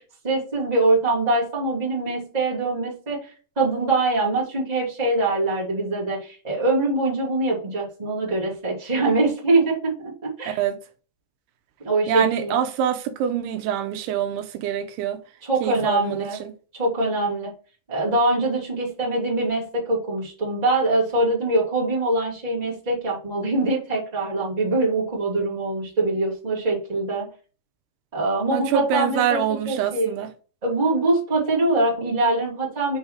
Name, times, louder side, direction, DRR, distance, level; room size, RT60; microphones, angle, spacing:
voice 1, 0.0-10.6 11.8-12.6 15.4-16.4 16.7-17.5 17.9-27.3 28.1-29.4 29.7-30.1 30.6-33.0, right 2 dB, 10° right, 2.2 m, -23 dB
voice 2, 10.5-10.8 12.1-15.2 15.6-16.5 28.5-30.3, right 9 dB, 85° right, 2.7 m, -25 dB
6.4 x 4.8 x 4.7 m
omnidirectional pair, 4.7 m